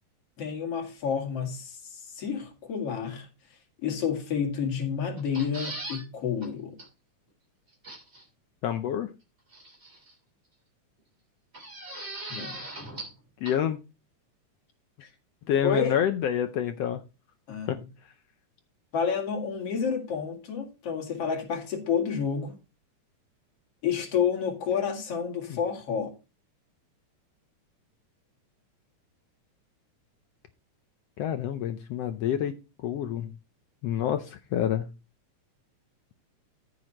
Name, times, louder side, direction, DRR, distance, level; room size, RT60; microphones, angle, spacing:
voice 1, 0.4-3.3 3.8-6.8 12.3-12.6 15.0-15.1 15.6-16.0 17.5-17.7 18.9-22.5 23.8-26.1, left 7 dB, 50° left, 2.8 m, -30 dB
sound 1, 5.2-6.0 6.4-6.5 6.8-6.9 7.8-8.2 9.5-10.1 11.5-13.2 13.4-13.5, right 2 dB, 20° right, 3.0 m, -39 dB
voice 2, 8.6-9.1 13.4-13.8 15.5-17.0 17.7-17.8 25.5-25.6 31.2-33.3 33.8-34.9, left 10 dB, 80° left, 1.4 m, -28 dB
14.5 x 6.2 x 2.9 m
omnidirectional pair, 3.6 m